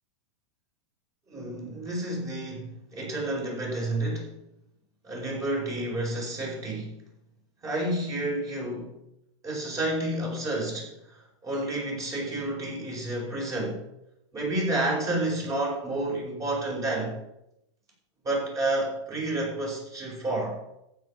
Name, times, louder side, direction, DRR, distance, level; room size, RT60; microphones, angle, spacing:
voice 1, 1.3-4.3 5.0-7.0 7.6-8.9 9.4-10.9 11.4-13.8 14.3-17.2 18.2-20.6, right 1 dB, 20° right, -1 dB, 4.8 m, -30 dB
12.0 x 9.0 x 4.9 m, 0.82 s
supercardioid pair, 145°, 15 cm